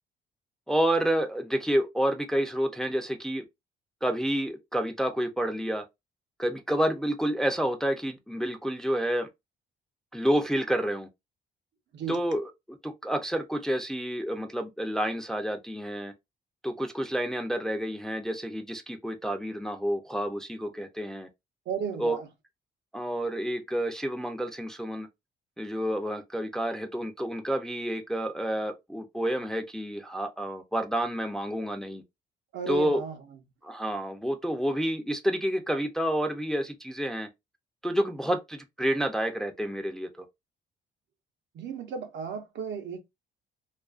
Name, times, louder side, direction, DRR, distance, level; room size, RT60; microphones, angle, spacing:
voice 1, 0.7-3.4 4.0-5.8 6.4-9.3 10.1-11.1 12.1-16.1 16.6-21.3 22.0-22.2 22.9-25.1 25.6-32.0 32.7-33.0 33.6-37.3 37.8-40.2, equal, 5° left, 0.4 m, -29 dB
voice 2, 21.7-22.3 32.5-33.2 41.5-43.0, right 7 dB, 65° right, 0.7 m, -34 dB
2.4 x 2.3 x 2.4 m
cardioid pair, 90°, 20 cm